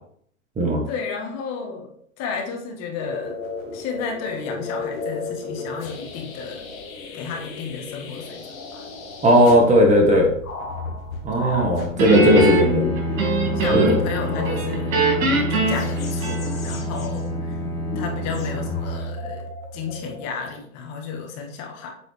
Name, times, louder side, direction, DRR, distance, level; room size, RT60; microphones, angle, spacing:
voice 1, 0.9-1.9 2.2-3.4 3.7-6.7 7.1-8.9 11.3-11.7 13.5-17.6 17.9-19.5 19.7-21.9, left 5 dB, 40° left, 2 dB, 1.6 m, -32 dB
sound 1, 3.0-20.5, left 4 dB, 80° left, 1.7 m, -34 dB
voice 2, 9.2-10.3 11.2-12.9 13.7-13.9, equal, 15° right, 0 dB, 1.5 m, -16 dB
Bowed string instrument, 11.9-19.9, equal, 5° left, 1.5 m, -28 dB
Guitar, 12.0-14.1 14.4-16.8, right 2 dB, 70° right, 2.9 m, -22 dB
8.4 x 3.9 x 3.4 m, 0.65 s
hypercardioid pair, 115°, 41 cm